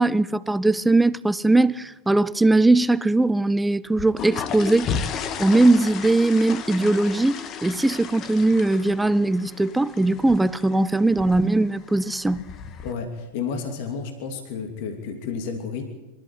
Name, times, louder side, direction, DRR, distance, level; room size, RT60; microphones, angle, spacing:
voice 1, 0.0-4.9 5.4-12.5, right 2 dB, 5° right, 0.7 m, -20 dB
sound 1, 3.9-12.9, left 6 dB, 30° left, 1.6 m, -34 dB
voice 2, 12.8-15.9, left 5 dB, 50° left, 2.8 m, -31 dB
25.5 x 14.0 x 9.4 m
figure-of-eight pair, 90°, 0 cm